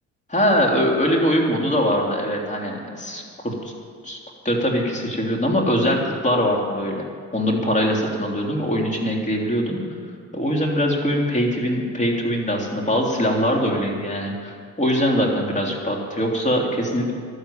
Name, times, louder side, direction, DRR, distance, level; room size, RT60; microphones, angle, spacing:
voice 1, 0.3-3.7 4.0-4.2 4.4-7.0 7.3-9.8 10.3-17.1, equal, 25° left, 0 dB, 3.3 m, -22 dB
13.5 x 11.5 x 8.7 m, 2.1 s
cardioid pair, 90°, 30 cm